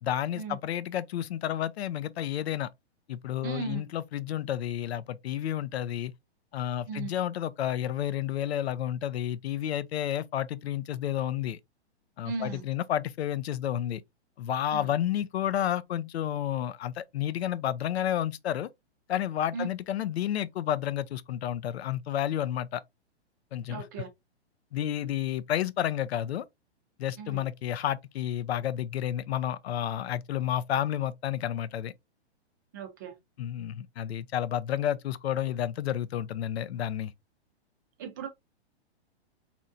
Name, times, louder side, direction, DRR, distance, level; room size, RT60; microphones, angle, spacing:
voice 1, 0.0-2.7 3.1-6.1 6.5-11.6 12.2-14.0 14.4-18.7 19.1-22.8 23.5-23.9 24.7-26.4 27.0-31.9 33.4-37.1, left 11 dB, 70° left, 0.5 m, -31 dB
voice 2, 3.4-3.8 6.9-7.1 12.2-12.6 14.7-14.8 19.5-19.7 23.7-24.1 27.2-27.4 32.7-33.2 38.0-38.3, right 5 dB, 20° right, 0.5 m, -36 dB
4.3 x 2.6 x 2.4 m
hypercardioid pair, 165°, 34 cm